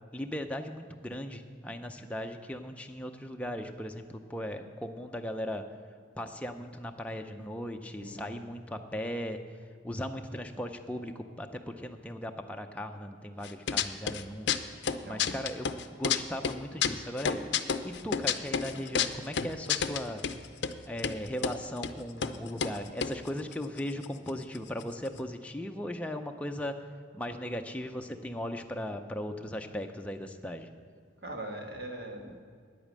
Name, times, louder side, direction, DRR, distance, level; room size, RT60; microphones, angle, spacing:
voice 1, 0.1-5.6 6.2-14.7 15.0-20.2 20.8-26.7 27.1-30.7, equal, 5° left, 4 dB, 0.5 m, -38 dB
voice 2, 8.0-8.4 14.8-15.4 31.2-32.4, right 1 dB, 60° right, 2 dB, 1.6 m, -42 dB
sound 1, 13.4-14.2 14.5-16.2 16.4-20.4 20.6-20.7 21.0-21.6 21.8-21.9 22.2-22.4 22.6-24.3 24.6-24.7 24.8-25.2, left 7 dB, 70° left, 0.5 m, -29 dB
9.9 x 8.5 x 7.4 m, 2.1 s
head